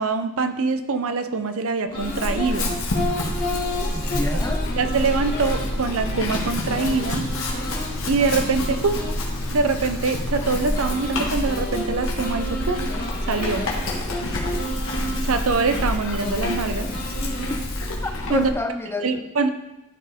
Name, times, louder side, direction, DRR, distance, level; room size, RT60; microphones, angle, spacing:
voice 1, 0.0-2.8 4.8-7.3 8.1-9.1 9.5-12.9 13.3-13.7 15.2-16.9 18.3-18.5 19.0-19.5, right 4 dB, 65° right, 9 dB, 0.6 m, -24 dB
Chewing mastication / Livestock farm animals working animals, 1.9-18.5, left 1 dB, 60° left, 1.5 m, -28 dB
sound 1, 1.9-17.6, left 1 dB, 45° left, 1.7 m, -33 dB
voice 2, 3.9-4.7 16.8-17.0 17.5-17.6 18.0-19.3, left 1 dB, 10° left, 6 dB, 0.3 m, -29 dB
12.0 x 4.4 x 3.5 m, 0.96 s
head